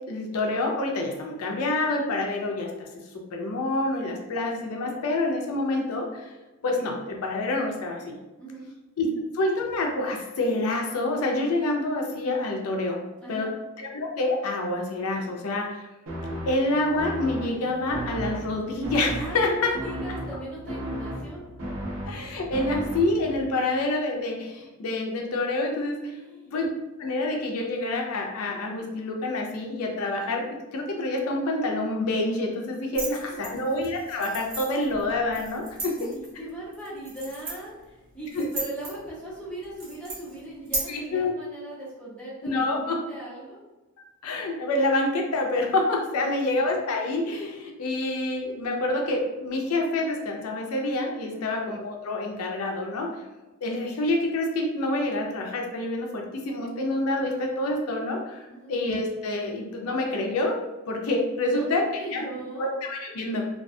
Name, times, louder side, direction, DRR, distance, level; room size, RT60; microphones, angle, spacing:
voice 1, 0.1-2.9 3.1-6.3 6.6-8.2 9.0-9.1 9.3-13.0 13.3-13.5 13.8-15.9 16.5-19.7 22.1-26.1 26.4-26.7 27.0-36.1 38.3-38.5 40.9-41.3 42.4-43.0 44.2-53.1 53.6-60.6 60.9-61.8 62.1-62.2 62.6-63.4, left 2 dB, 80° left, 1 dB, 0.4 m, -27 dB
voice 2, 8.4-8.7 13.2-13.5 19.1-21.4 26.1-26.5 33.0-33.6 35.9-43.6 46.1-46.3 51.3-51.6 58.5-58.7 61.4-61.7 61.9-62.7, right 1 dB, 5° left, -9 dB, 0.8 m, -39 dB
sound 1, 16.1-23.4, equal, 65° right, 0.7 m, -35 dB
sound 2, 32.9-40.8, right 2 dB, 85° right, 1.2 m, -37 dB
2.3 x 2.2 x 2.5 m, 1.1 s
head